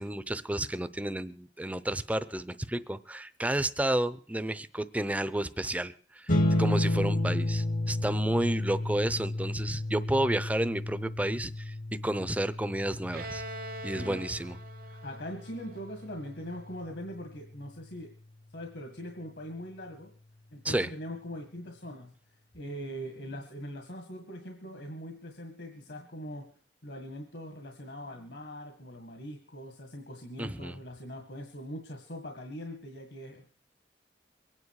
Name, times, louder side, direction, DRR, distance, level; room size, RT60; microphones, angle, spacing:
voice 1, 0.0-6.3 6.6-11.7 12.0-13.4 13.8-14.6 20.6-20.9 30.4-30.8, right 1 dB, 10° right, 13 dB, 0.6 m, -31 dB
sound 1, 6.3-17.0, left 1 dB, 50° left, 1.0 m, -32 dB
Bowed string instrument, 13.1-16.7, right 1 dB, 55° right, 1.0 m, -43 dB
voice 2, 14.8-18.1 18.5-20.1 20.5-22.1 22.5-26.5 26.8-33.4, equal, 75° left, 3 dB, 1.9 m, -41 dB
23.0 x 9.8 x 4.8 m, 0.43 s
head